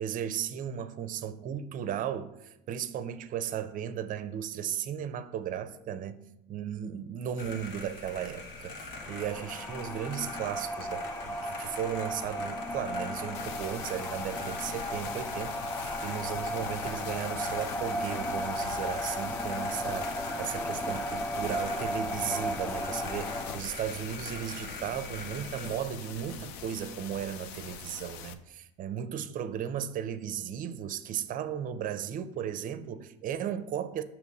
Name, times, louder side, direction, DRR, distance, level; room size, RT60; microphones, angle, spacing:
voice 1, 0.0-34.0, right 9 dB, 45° right, 0.5 m, -36 dB
sound 1, 7.4-25.8, left 3 dB, 65° left, 1.3 m, -43 dB
sound 2, 8.9-23.6, left 1 dB, 10° left, 0.4 m, -35 dB
sound 3, 13.3-28.3, left 7 dB, 80° left, 0.5 m, -44 dB
6.2 x 2.9 x 5.3 m
supercardioid pair, 100°, 19 cm